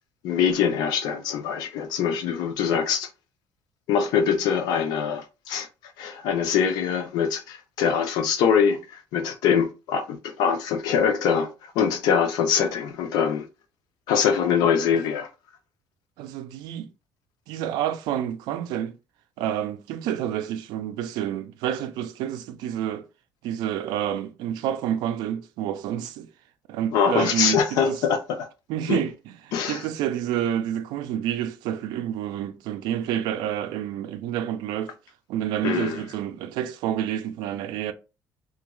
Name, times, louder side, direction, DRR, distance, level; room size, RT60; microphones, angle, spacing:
voice 1, 0.2-3.1 3.9-5.7 6.0-13.5 14.1-15.3 26.9-28.5 28.9-29.0 29.5-29.8 35.6-36.0, left 7 dB, 75° left, 0.6 m, -23 dB
voice 2, 16.2-16.9 17.5-19.0 19.4-23.1 23.4-26.3 26.7-28.0 28.7-34.9 35.3-37.9, right 10 dB, 75° right, 0.4 m, -29 dB
2.4 x 2.3 x 3.0 m
cardioid pair, 175°, 7 cm